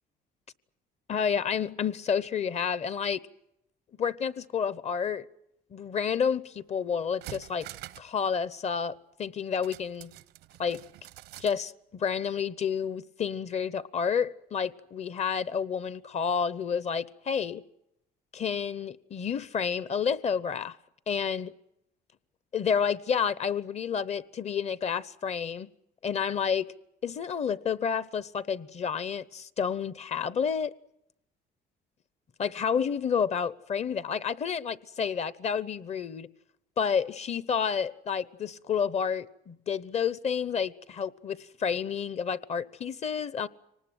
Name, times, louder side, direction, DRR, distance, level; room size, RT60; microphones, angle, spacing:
voice 1, 1.1-3.2 4.0-5.2 5.7-7.7 8.0-8.9 9.2-10.1 10.6-10.8 11.4-17.6 18.3-20.8 21.1-21.5 22.5-25.7 26.0-26.7 27.0-30.7 32.4-36.3 36.8-43.5, left 7 dB, 40° left, 0.8 m, -30 dB
sound 1, 6.6-6.7 7.0-8.2 8.4-8.5 9.6-11.6 11.9-12.0, right 15 dB, 90° right, 0.8 m, -46 dB
24.5 x 19.5 x 9.1 m
cardioid pair, 110°, 17 cm